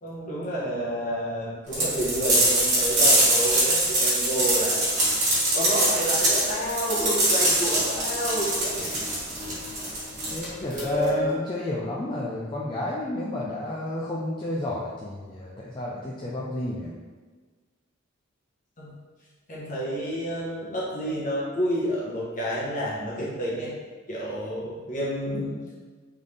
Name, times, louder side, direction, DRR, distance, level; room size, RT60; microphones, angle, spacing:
voice 1, 0.0-4.8 5.5-9.0 10.6-11.3 18.8-18.9 19.5-23.7 24.1-25.6, right 1 dB, 40° left, -6 dB, 1.2 m, -29 dB
sound 1, 1.7-11.1, right 1 dB, 40° right, 1.5 m, -23 dB
voice 2, 10.3-16.9, left 2 dB, 25° left, -5 dB, 0.4 m, -31 dB
3.8 x 3.6 x 3.3 m, 1.4 s
head